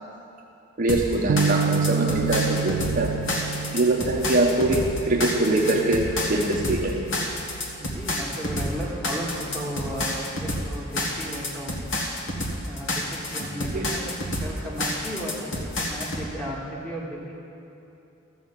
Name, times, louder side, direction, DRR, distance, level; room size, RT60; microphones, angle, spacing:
voice 1, 0.8-3.2 3.7-7.0 13.7-13.9, right 2 dB, 40° right, 0 dB, 0.8 m, -23 dB
sound 1, 0.9-16.3, left 1 dB, 60° left, 1.5 m, -29 dB
sound 2, 1.3-7.7, right 6 dB, 70° right, 0.3 m, -30 dB
voice 2, 7.8-12.1 12.6-17.3, equal, 5° left, -5 dB, 1.8 m, -35 dB
13.0 x 6.5 x 7.3 m, 2.8 s
head